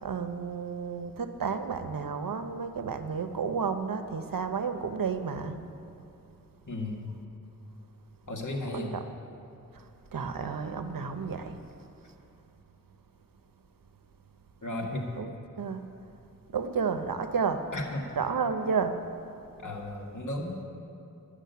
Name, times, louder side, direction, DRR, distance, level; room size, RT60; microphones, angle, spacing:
voice 1, 0.0-5.6 8.7-9.0 9.7-11.6 15.2-15.9 16.5-17.7 18.1-19.0, right 5 dB, 90° right, 8 dB, 0.8 m, -32 dB
voice 2, 6.7-7.1 8.3-8.9 14.6-15.1 17.7-18.1 19.6-20.6, left 1 dB, 65° left, 0 dB, 1.8 m, -34 dB
12.0 x 6.3 x 9.3 m, 2.8 s
wide cardioid pair, 55°, 33 cm